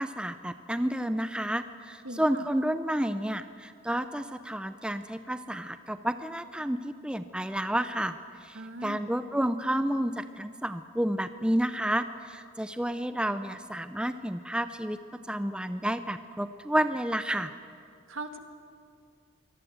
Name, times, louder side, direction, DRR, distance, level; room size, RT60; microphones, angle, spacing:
voice 1, 0.0-15.0 15.3-17.5, right 1 dB, 5° right, 10 dB, 0.5 m, -30 dB
voice 2, 2.0-2.5 8.5-9.0 18.1-18.4, right 2 dB, 80° right, 7 dB, 1.8 m, -40 dB
24.0 x 18.0 x 7.9 m, 2.3 s
head